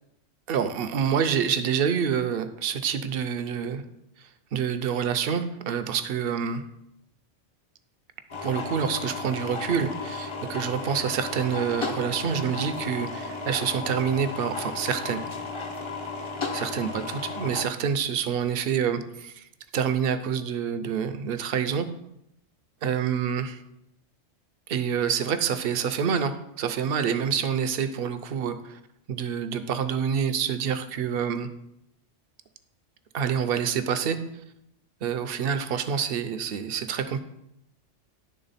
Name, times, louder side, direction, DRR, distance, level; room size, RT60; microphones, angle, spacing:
voice 1, 0.5-3.8 4.5-6.6 8.4-15.2 16.5-19.4 19.7-21.9 22.8-23.6 24.7-28.8 29.1-31.5 33.1-34.2 35.0-37.2, right 7 dB, 60° right, 10 dB, 0.7 m, -27 dB
sound 1, 8.3-17.7, left 4 dB, 35° left, 0.5 m, -34 dB
10.5 x 3.6 x 4.0 m, 0.82 s
omnidirectional pair, 1.2 m